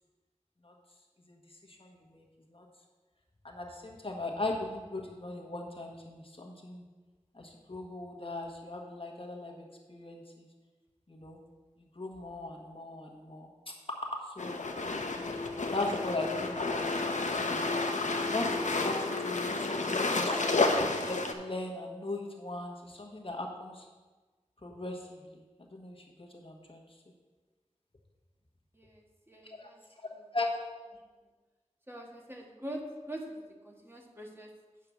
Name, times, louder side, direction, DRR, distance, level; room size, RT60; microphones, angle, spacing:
voice 1, 1.2-2.7 3.4-6.8 7.3-10.5 11.1-11.4 11.9-13.5 13.9-14.6 15.7-16.9 17.4-17.7 18.2-20.4 21.0-23.9 24.6-26.8 29.4-29.7 30.0-30.5, left 2 dB, 45° left, 0 dB, 1.3 m, -39 dB
sound 1, 14.4-21.3, left 3 dB, 75° left, 0.7 m, -31 dB
voice 2, 28.7-29.8 31.9-34.5, right 1 dB, 20° right, 0 dB, 1.4 m, -44 dB
8.6 x 4.8 x 6.0 m, 1.3 s
wide cardioid pair, 40°, 13 cm